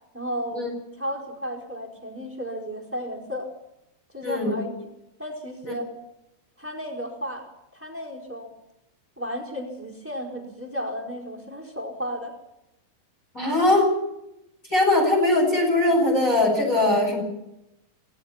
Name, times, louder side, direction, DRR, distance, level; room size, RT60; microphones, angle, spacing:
voice 1, 0.1-0.7 1.0-3.5 4.1-4.9 5.2-5.9 6.6-8.5 9.2-12.4, equal, 5° right, 1 dB, 4.2 m, -33 dB
voice 2, 4.2-4.6 5.6-5.7 13.3-13.9 14.7-17.2, left 2 dB, 20° left, 2 dB, 8.0 m, -21 dB
27.5 x 19.0 x 5.8 m, 0.86 s
omnidirectional pair, 4.1 m